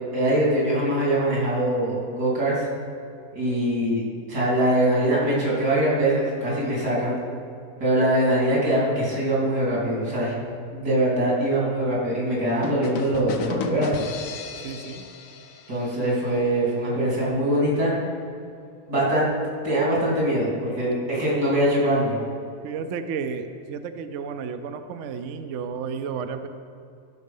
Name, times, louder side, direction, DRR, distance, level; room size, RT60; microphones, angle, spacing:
voice 1, 0.1-2.7 3.3-4.0 4.3-7.2 7.8-10.3 10.7-14.1 15.7-17.9 18.9-19.3 19.6-22.2, right 1 dB, 90° right, -6 dB, 3.7 m, -23 dB
sound 1, 12.6-16.4, left 6 dB, 65° left, 1.0 m, -34 dB
voice 2, 14.6-15.0 16.0-16.3 22.6-26.5, right 6 dB, 65° right, 8 dB, 0.8 m, -32 dB
13.5 x 6.3 x 5.5 m, 2.5 s
omnidirectional pair, 1.7 m